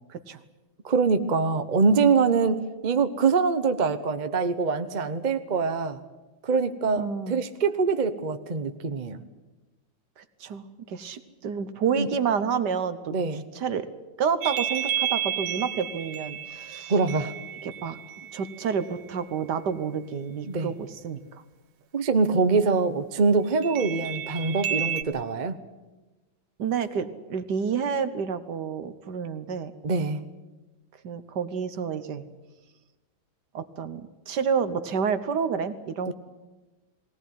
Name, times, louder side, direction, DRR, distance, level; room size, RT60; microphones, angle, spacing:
voice 1, 0.1-0.4 7.0-7.4 10.2-13.1 13.5-13.9 14.2-16.9 17.6-18.0 18.3-21.2 26.6-29.7 31.0-32.2 33.5-36.1, right 6 dB, 60° right, 11 dB, 1.6 m, -29 dB
voice 2, 0.8-6.0 6.4-9.2 12.0-12.1 13.1-13.4 16.9-17.3 20.5-20.7 21.9-25.6 29.8-30.2 36.1-36.2, right 4 dB, 35° right, 9 dB, 0.7 m, -24 dB
sound 1, 14.4-19.0 23.6-25.0, right 10 dB, 80° right, 1.9 m, -32 dB
20.5 x 18.5 x 9.4 m, 1.2 s
omnidirectional pair, 2.3 m